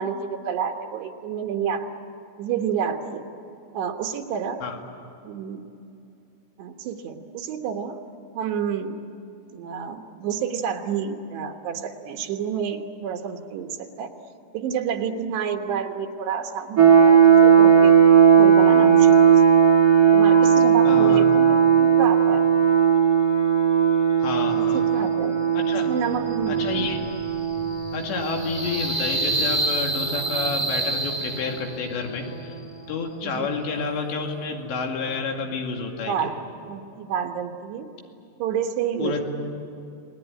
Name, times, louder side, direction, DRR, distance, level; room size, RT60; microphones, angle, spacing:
voice 1, 0.0-1.9 2.4-3.2 3.7-4.6 5.2-5.7 6.6-8.0 8.3-9.0 9.5-14.1 14.5-18.0 18.4-19.4 20.1-22.4 24.6-25.4 25.9-26.6 33.2-33.5 36.1-37.9 38.4-39.2, right 7 dB, 75° right, 3 dB, 3.3 m, -29 dB
sound 1, 16.8-30.5, right 7 dB, 40° right, 1.5 m, -17 dB
voice 2, 20.9-21.2 24.2-24.8 25.5-25.9 26.5-27.0 27.9-32.6 32.9-36.3 39.0-39.2, left 4 dB, 85° left, 2 dB, 4.6 m, -29 dB
sound 2, 26.0-31.9, right 2 dB, 15° right, 0.9 m, -29 dB
29.5 x 20.0 x 10.0 m, 2.7 s
omnidirectional pair, 4.9 m